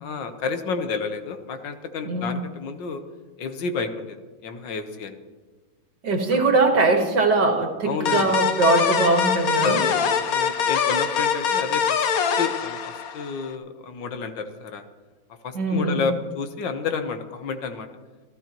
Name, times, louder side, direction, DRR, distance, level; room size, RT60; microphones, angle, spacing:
voice 1, 0.0-3.0 3.4-5.2 7.9-8.4 9.6-12.0 12.4-12.8 13.1-14.8 15.4-17.9, left 5 dB, 75° left, 7 dB, 1.7 m, -30 dB
voice 2, 2.0-2.4 6.0-9.8 15.5-16.0, right 3 dB, 65° right, 3 dB, 2.4 m, -21 dB
sound 1, 8.1-13.5, left 7 dB, 60° left, 1.2 m, -23 dB
27.0 x 13.5 x 3.0 m, 1.4 s
omnidirectional pair, 2.0 m